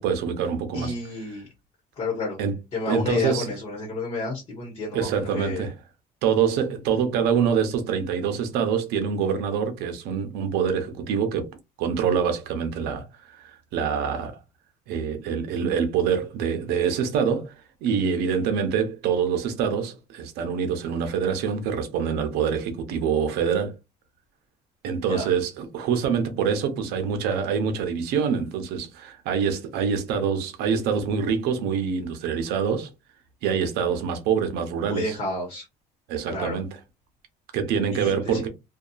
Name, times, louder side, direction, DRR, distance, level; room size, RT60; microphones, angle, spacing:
voice 1, 0.0-0.9 2.4-2.5 2.9-3.5 4.9-5.7 6.2-11.5 11.8-14.4 14.9-17.5 17.8-23.7 24.8-32.9 33.4-35.2 36.1-36.7 37.5-38.5, right 7 dB, 80° right, 0.7 m, -25 dB
voice 2, 0.7-1.5 2.0-2.4 2.7-5.6 25.1-25.3 34.8-35.6 36.3-36.6 37.9-38.5, left 2 dB, 35° left, 1.0 m, -30 dB
2.7 x 2.3 x 2.3 m
cardioid pair, 180°, 17 cm